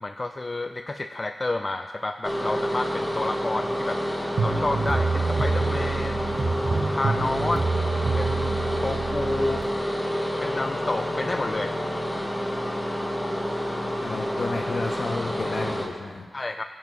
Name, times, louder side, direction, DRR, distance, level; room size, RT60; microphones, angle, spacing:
voice 1, 0.0-4.0 4.4-6.2 6.7-7.6 8.1-9.6 10.4-11.7 16.3-16.6, left 2 dB, 30° left, 6 dB, 0.3 m, -30 dB
sound 1, 2.2-15.9, equal, 5° left, 1.2 m, -28 dB
sound 2, 4.4-9.7, right 4 dB, 60° right, 1.0 m, -27 dB
voice 2, 14.0-16.3, left 3 dB, 65° left, 1 dB, 0.7 m, -31 dB
17.0 x 7.1 x 3.1 m, 1.5 s
wide cardioid pair, 75°, 0 cm